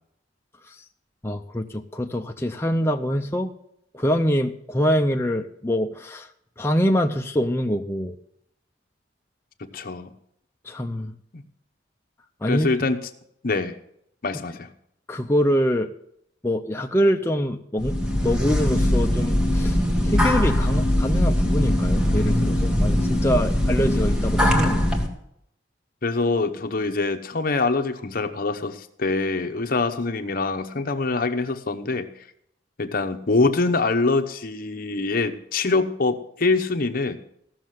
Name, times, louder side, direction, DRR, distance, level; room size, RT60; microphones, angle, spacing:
voice 1, 1.2-3.5 3.9-6.3 6.6-8.2 10.6-11.1 12.4-12.7 15.1-15.9 16.4-24.9, equal, 15° left, 3 dB, 0.5 m, -24 dB
voice 2, 9.6-10.1 11.3-11.4 12.5-13.0 13.4-13.8 14.2-14.7 26.0-32.1 32.8-37.2, left 3 dB, 50° left, 6 dB, 0.9 m, -24 dB
sound 1, 17.8-25.1, left 1 dB, 5° right, 1.7 m, -21 dB
15.0 x 6.5 x 7.7 m, 0.74 s
head